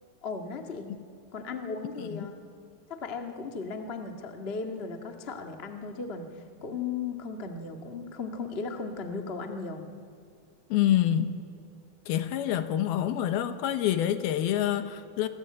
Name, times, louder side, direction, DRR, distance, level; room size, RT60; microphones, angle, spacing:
voice 1, 0.2-0.9 1.3-2.3 2.9-9.8, left 4 dB, 55° left, 0.6 m, -36 dB
voice 2, 10.7-11.4 12.1-15.3, left 11 dB, 75° left, 2.9 m, -27 dB
28.0 x 22.5 x 8.9 m
omnidirectional pair, 4.8 m